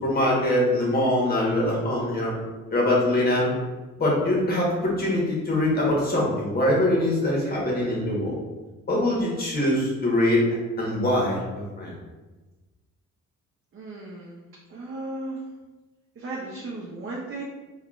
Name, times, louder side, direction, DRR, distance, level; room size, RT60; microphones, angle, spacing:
voice 1, 0.0-2.3 2.7-3.5 4.0-8.4 8.9-10.4 10.8-11.9, left 1 dB, 30° left, -3 dB, 1.2 m, -23 dB
voice 2, 13.7-14.4 14.7-15.4 16.2-17.4, right 2 dB, 45° right, -4 dB, 0.6 m, -35 dB
3.5 x 2.4 x 2.4 m, 1.2 s
cardioid pair, 90°, 30 cm